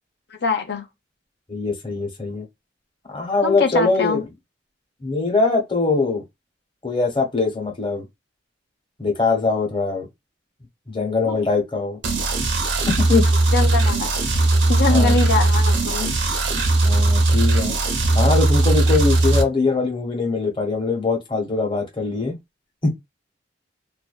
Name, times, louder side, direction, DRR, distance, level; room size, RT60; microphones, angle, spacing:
voice 1, 0.4-0.8 3.4-4.2 11.2-11.4 13.5-14.1 14.7-16.2, left 4 dB, 60° left, 0.7 m, -23 dB
voice 2, 1.5-2.5 3.1-4.3 5.0-6.2 6.8-8.0 9.0-10.1 10.9-12.0 12.9-13.2 14.9-15.2 16.8-17.7 18.1-22.4 22.8-22.9, left 3 dB, 25° left, 1.0 m, -22 dB
sound 1, 12.0-19.4, right 2 dB, 75° right, 0.7 m, -18 dB
2.5 x 2.2 x 2.4 m
head